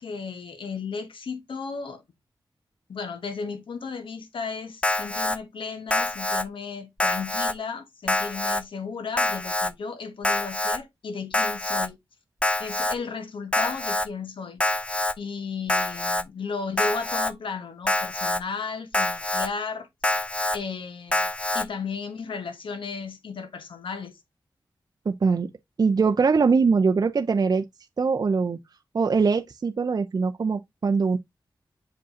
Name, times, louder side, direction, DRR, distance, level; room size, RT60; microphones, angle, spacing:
voice 1, 0.0-2.0 2.9-12.0 12.6-14.7 15.2-19.9 20.5-24.1, left 5 dB, 85° left, 1.3 m, -34 dB
Alarm, 4.8-5.4 5.9-6.4 7.0-7.5 8.1-8.6 9.2-9.7 10.2-10.8 11.3-11.9 12.4-13.0 13.5-14.1 14.6-15.1 15.7-16.2 16.8-17.3 17.9-18.4 18.9-19.5 20.0-20.6 21.1-21.6, left 1 dB, 15° left, 0.5 m, -25 dB
voice 2, 25.1-25.5 25.8-27.6 28.0-28.6 28.9-31.2, right 5 dB, 50° right, 0.5 m, -22 dB
7.0 x 5.1 x 2.7 m
wide cardioid pair, 85°, 8 cm